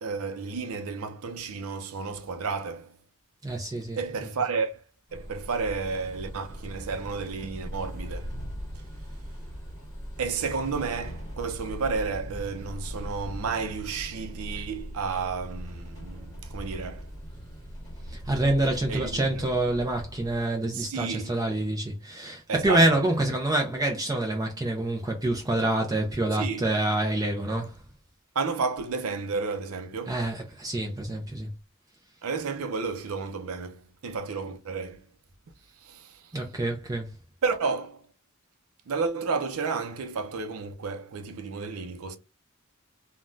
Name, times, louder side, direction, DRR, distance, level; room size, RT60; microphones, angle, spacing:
voice 1, 0.0-3.0 4.0-4.8 5.1-8.4 10.2-17.1 18.9-19.5 20.7-21.4 22.5-22.8 26.3-26.7 28.3-30.1 32.2-35.0 35.8-36.4 37.4-38.0 38.9-42.2, right 4 dB, 80° right, 0.5 m, -32 dB
voice 2, 3.4-4.5 18.1-27.8 30.1-31.5 36.3-37.1, right 1 dB, 15° right, 0.5 m, -27 dB
sound 1, 5.1-20.4, equal, 15° left, 1.3 m, -40 dB
3.4 x 2.2 x 2.5 m
head